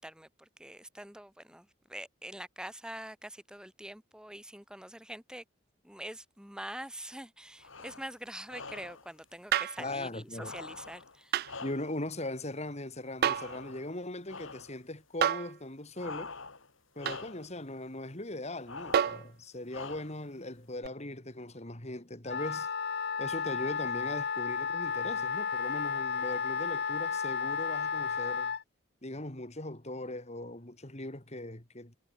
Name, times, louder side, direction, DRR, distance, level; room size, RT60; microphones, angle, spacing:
voice 1, 0.0-5.4 5.8-11.6, right 1 dB, 5° right, 1.8 m, -45 dB
sound 1, 7.6-8.1 8.5-9.1 10.3-12.1 13.2-14.0 14.3-14.8 16.0-16.7 17.0-17.5 18.7-19.3 19.7-20.3, left 4 dB, 75° left, 4.7 m, -45 dB
sound 2, 9.5-9.8 11.3-11.5 13.2-13.6 15.2-15.6 17.1-17.3 18.9-19.3 20.8-20.9, right 9 dB, 50° right, 0.3 m, -28 dB
voice 2, 9.8-10.5 11.6-16.3 16.9-22.7 23.2-28.5 29.0-32.0, left 1 dB, 35° left, 3.2 m, -39 dB
Wind instrument woodwind instrument, 22.3-28.6, left 6 dB, 55° left, 1.0 m, -33 dB
head